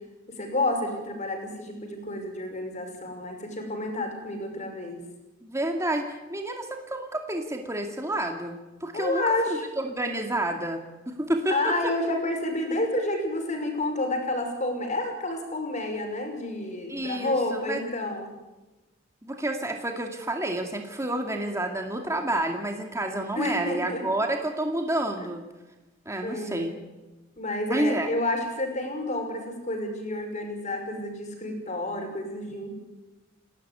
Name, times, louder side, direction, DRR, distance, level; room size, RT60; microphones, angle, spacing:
voice 1, 0.4-5.0 8.9-9.6 11.5-18.3 23.4-24.0 25.2-25.3 26.2-26.7 27.4-32.8, left 1 dB, 35° left, 4 dB, 5.7 m, -30 dB
voice 2, 5.4-9.2 9.8-11.9 16.9-17.8 19.2-25.4 26.1-26.8 27.7-28.1, right 1 dB, 15° right, 3 dB, 2.3 m, -29 dB
29.5 x 12.5 x 9.7 m, 1.1 s
head